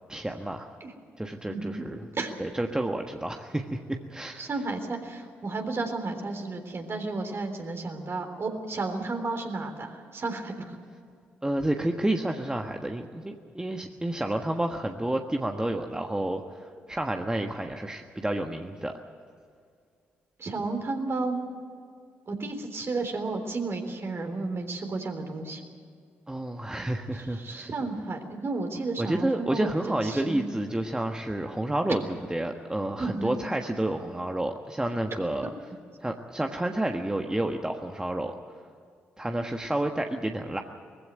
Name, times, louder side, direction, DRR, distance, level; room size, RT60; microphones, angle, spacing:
voice 1, 0.1-0.7 1.2-2.0 2.4-4.5 11.4-18.9 26.3-27.7 29.0-35.5 36.0-38.3 39.2-40.6, right 1 dB, 15° right, 4 dB, 1.4 m, -30 dB
voice 2, 1.5-1.9 2.1-2.3 4.4-10.8 20.4-21.5 22.3-25.6 27.1-29.7 30.0-30.5 33.0-33.3, right 3 dB, 45° right, 5 dB, 3.6 m, -32 dB
20.0 x 15.5 x 9.4 m, 2.2 s
hypercardioid pair, 45°, 6 cm